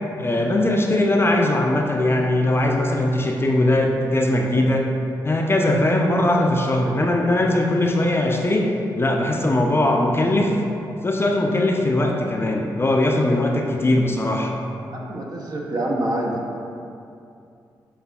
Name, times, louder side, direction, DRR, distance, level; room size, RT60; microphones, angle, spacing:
voice 1, 0.2-4.9 5.2-8.7 9.0-10.6 11.0-14.5, left 1 dB, 30° left, 1 dB, 0.4 m, -20 dB
voice 2, 14.9-16.6, right 1 dB, 50° right, -1 dB, 0.7 m, -26 dB
6.5 x 2.4 x 2.3 m, 2.5 s
supercardioid pair, 50°, 8 cm